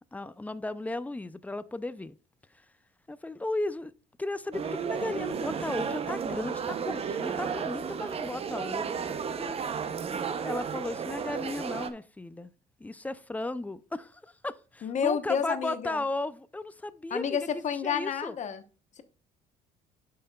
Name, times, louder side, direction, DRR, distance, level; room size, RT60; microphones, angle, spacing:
voice 1, 0.1-2.2 2.5-2.7 3.1-3.9 4.2-9.0 9.4-9.6 10.4-12.5 12.8-18.3, left 2 dB, 10° left, 0.4 m, -35 dB
sound 1, 4.5-11.9, right 6 dB, 35° right, 0.7 m, -33 dB
voice 2, 14.8-16.0 17.1-18.6, left 7 dB, 45° left, 1.0 m, -30 dB
10.5 x 5.7 x 2.3 m
cardioid pair, 110°, 17 cm